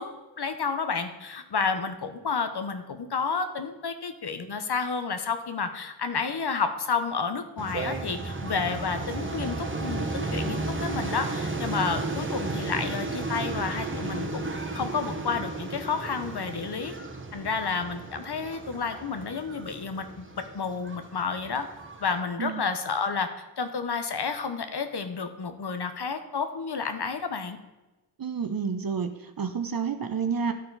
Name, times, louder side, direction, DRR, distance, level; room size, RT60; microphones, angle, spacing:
voice 1, 0.0-16.9 17.3-21.7 22.0-27.6, left 5 dB, 55° left, 8 dB, 0.9 m, -31 dB
sound 1, 7.6-22.2, right 2 dB, 25° right, 1.1 m, -34 dB
voice 2, 28.2-30.5, right 6 dB, 50° right, 8 dB, 0.7 m, -29 dB
12.0 x 4.4 x 4.0 m, 1.1 s
cardioid pair, 45°, 46 cm